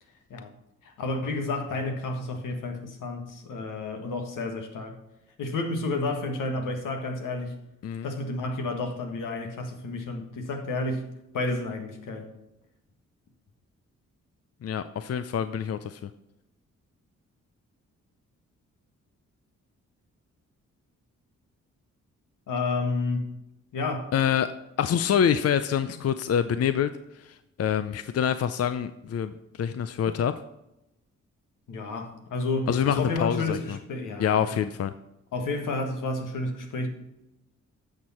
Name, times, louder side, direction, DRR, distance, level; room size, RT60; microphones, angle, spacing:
voice 1, 0.8-4.9 5.4-7.5 8.0-11.1 11.3-12.3 22.5-23.3 23.7-24.1 31.7-34.6 35.3-36.9, left 3 dB, 80° left, 1.6 m, -31 dB
voice 2, 14.6-16.0 24.1-24.5 24.8-26.9 27.6-29.3 29.6-30.3 32.7-33.8 34.2-34.9, left 8 dB, 50° left, 0.5 m, -26 dB
10.5 x 6.6 x 4.3 m
supercardioid pair, 50°, 31 cm